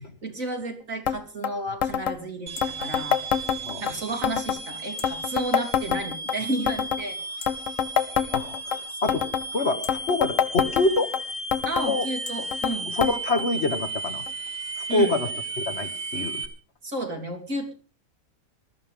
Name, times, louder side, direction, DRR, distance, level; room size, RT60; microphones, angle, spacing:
voice 1, 0.2-3.2 3.8-7.2 9.0-9.1 11.7-13.0 14.9-15.2 16.8-17.7, right 2 dB, 80° right, 4 dB, 3.3 m, -32 dB
sound 1, 1.1-1.2 1.4-1.5 1.8-2.2 2.6-3.9 4.2-4.6 5.0-6.4 6.7-7.0 7.4-8.8 9.1-9.5 9.8-11.2 11.5-11.9 12.3-12.7 13.0-13.1 13.4-13.5 14.3-14.4 15.1-15.2, left 8 dB, 70° left, 1.3 m, -25 dB
sound 2, 2.5-16.5, right 3 dB, 55° right, 2.4 m, -35 dB
voice 2, 8.3-9.3 9.5-11.1 11.8-12.1 12.9-14.3 14.8-15.3 15.6-16.5, left 2 dB, 55° left, 9 dB, 1.8 m, -26 dB
20.5 x 13.0 x 3.6 m, 0.37 s
omnidirectional pair, 1.4 m